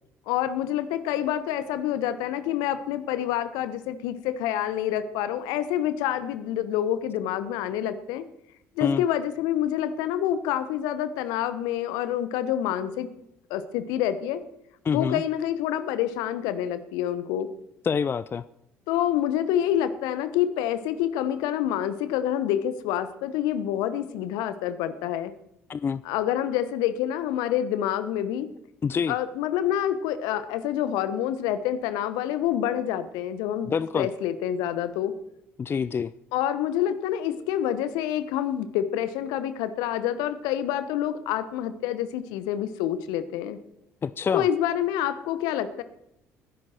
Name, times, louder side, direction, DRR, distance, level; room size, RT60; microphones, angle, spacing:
voice 1, 0.3-8.3 8.8-13.1 13.5-14.4 14.9-17.5 18.9-25.3 26.0-28.5 29.1-35.1 36.3-43.6 44.3-45.8, left 11 dB, 65° left, 13 dB, 1.0 m, -27 dB
voice 2, 14.8-15.2 17.8-18.4 25.7-26.0 28.8-29.2 33.7-34.1 35.6-36.1 44.0-44.5, left 6 dB, 30° left, 17 dB, 0.4 m, -26 dB
20.0 x 11.0 x 4.4 m, 0.80 s
figure-of-eight pair, 55°, 7 cm